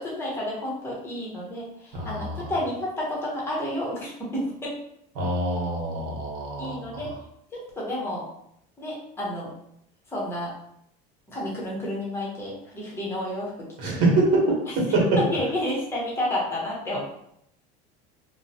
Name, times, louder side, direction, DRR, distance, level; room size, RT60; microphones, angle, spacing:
voice 1, 0.0-4.7 6.6-7.1 7.5-8.2 8.8-9.5 10.1-10.5 11.3-14.0 15.2-17.1, left 1 dB, 10° left, -5 dB, 0.8 m, -30 dB
voice 2, 1.9-2.3 5.2-6.8 13.8-14.6 14.9-15.0, right 2 dB, 60° right, -2 dB, 1.1 m, -24 dB
2.9 x 2.1 x 2.7 m, 0.73 s
cardioid pair, 155°, 21 cm